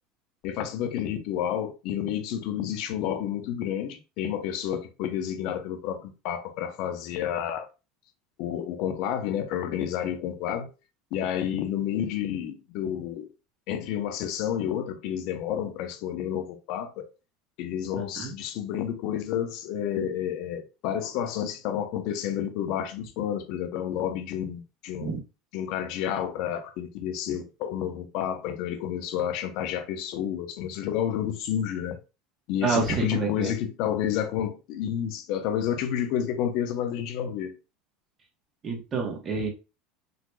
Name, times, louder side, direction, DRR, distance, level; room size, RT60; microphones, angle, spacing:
voice 1, 0.4-7.7 8.4-10.7 11.1-13.3 13.7-17.1 17.6-25.1 25.5-32.0 32.5-37.5, left 10 dB, 65° left, 0.7 m, -30 dB
voice 2, 32.6-33.5 38.6-39.5, right 5 dB, 35° right, 1.3 m, -28 dB
4.0 x 2.9 x 2.3 m
supercardioid pair, 105°, 0 cm